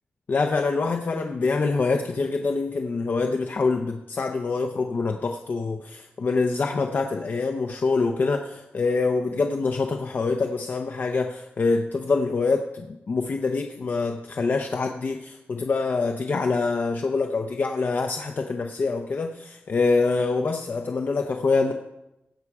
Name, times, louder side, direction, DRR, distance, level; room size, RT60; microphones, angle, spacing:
voice 1, 0.3-21.7, left 4 dB, 50° left, 4 dB, 0.7 m, -25 dB
17.0 x 5.8 x 4.8 m, 0.90 s
wide cardioid pair, 150°, 4 cm